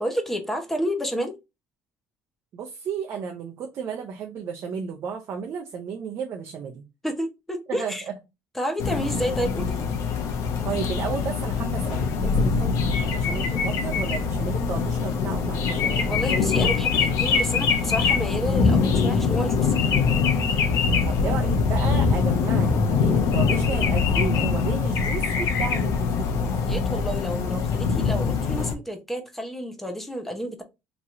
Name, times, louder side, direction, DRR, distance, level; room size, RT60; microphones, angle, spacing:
voice 1, 0.0-1.3 7.0-8.1 8.5-9.9 16.1-19.7 26.7-30.6, equal, 5° left, 0.7 m, -30 dB
voice 2, 2.5-6.8 7.8-8.1 10.6-16.1 21.1-26.3, right 6 dB, 45° right, 0.6 m, -33 dB
sound 1, 8.8-28.7, left 5 dB, 60° left, 0.7 m, -23 dB
3.0 x 2.8 x 3.6 m
cardioid pair, 140°, 6 cm